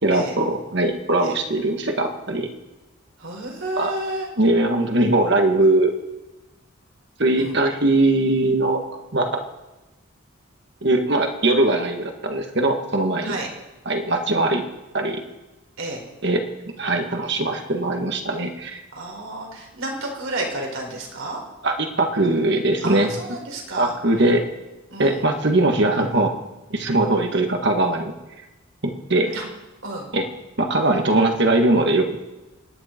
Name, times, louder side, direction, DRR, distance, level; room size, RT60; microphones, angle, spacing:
voice 1, 0.0-2.5 3.8-3.9 4.4-5.9 7.2-8.8 9.1-9.3 10.8-13.4 13.8-14.6 14.9-15.2 16.2-16.4 16.8-18.8 21.6-23.1 23.8-24.4 25.0-26.3 26.7-28.1 28.8-29.3 30.1-30.3 30.6-32.2, right 2 dB, 55° right, 4 dB, 1.7 m, -20 dB
voice 2, 3.2-4.3 7.4-7.5 13.2-13.5 15.8-16.0 18.9-21.4 22.8-23.9 24.9-25.2 29.3-29.4 29.8-30.1, right 2 dB, 70° right, 0 dB, 4.0 m, -31 dB
26.0 x 10.0 x 4.5 m, 1.1 s
head